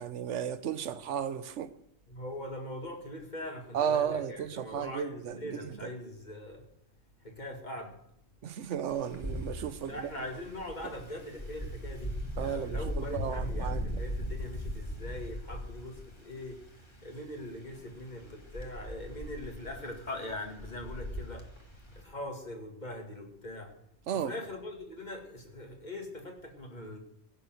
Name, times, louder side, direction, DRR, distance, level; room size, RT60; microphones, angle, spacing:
voice 1, 0.0-1.7 3.7-5.9 8.4-10.1 12.4-13.9 24.1-24.3, right 8 dB, 90° right, 1.1 m, -34 dB
voice 2, 2.1-6.7 7.2-8.0 9.8-16.6 17.0-21.5 22.0-23.7 24.1-27.0, left 1 dB, 40° left, 2.3 m, -41 dB
Wind, 8.9-22.0, equal, 25° left, 1.8 m, -39 dB
16.0 x 6.9 x 7.8 m
omnidirectional pair, 1.2 m